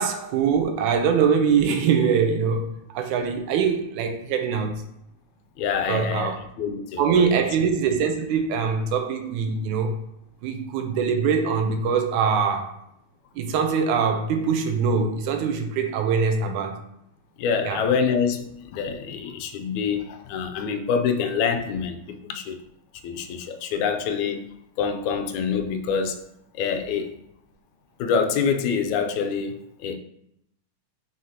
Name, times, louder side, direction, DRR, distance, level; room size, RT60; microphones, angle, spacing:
voice 1, 0.0-4.8 5.9-6.4 7.0-10.0 10.4-12.8 13.4-16.8 17.6-17.8, right 6 dB, 85° right, 2.1 m, -23 dB
voice 2, 5.6-7.4 17.4-22.6 23.0-24.4 24.8-26.2 26.5-27.2 28.0-30.0, left 6 dB, 80° left, 2.0 m, -26 dB
6.0 x 5.7 x 2.8 m
omnidirectional pair, 3.4 m